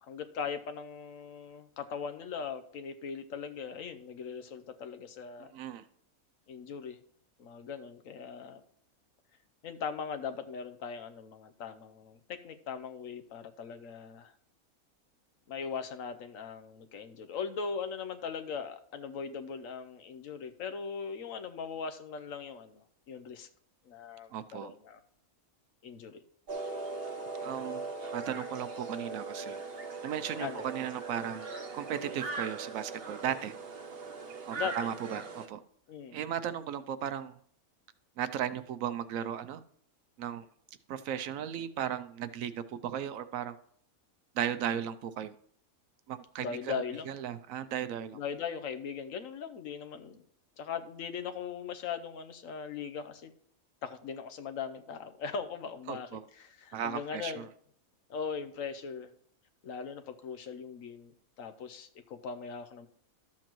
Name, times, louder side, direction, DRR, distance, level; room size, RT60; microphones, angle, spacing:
voice 1, 0.0-5.5 6.5-7.0 7.4-8.6 9.6-14.3 15.5-23.5 23.9-25.0 25.8-26.2 30.4-30.7 34.5-35.2 35.9-36.2 46.4-47.1 48.1-50.2 50.6-53.3 53.8-57.5 58.1-59.1 59.6-61.1 61.4-62.9, left 6 dB, 70° left, 9 dB, 1.1 m, -40 dB
voice 2, 5.5-5.8 24.3-24.7 27.4-29.6 30.0-31.5 31.7-33.5 34.4-35.6 36.1-37.4 38.2-39.6 40.2-40.4 40.9-43.6 44.4-45.3 46.1-46.8 47.1-48.2 55.9-56.2 56.7-57.5, right 9 dB, 70° right, 12 dB, 0.9 m, -36 dB
sound 1, 26.5-35.5, right 3 dB, 50° right, 1.0 m, -40 dB
13.0 x 7.3 x 3.0 m, 0.62 s
omnidirectional pair, 1.5 m